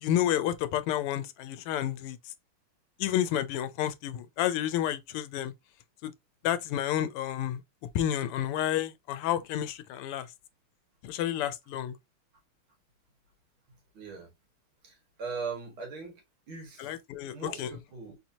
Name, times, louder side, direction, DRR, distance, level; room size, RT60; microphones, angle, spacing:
voice 1, 0.0-2.2 3.0-5.5 6.0-6.1 6.4-7.6 7.9-10.3 11.0-12.0 16.8-17.7, left 11 dB, 85° left, 1.5 m, -30 dB
voice 2, 13.9-14.3 14.8-16.1 16.5-16.9 17.3-18.2, right 5 dB, 70° right, 2.3 m, -39 dB
4.4 x 2.8 x 2.7 m
omnidirectional pair, 2.4 m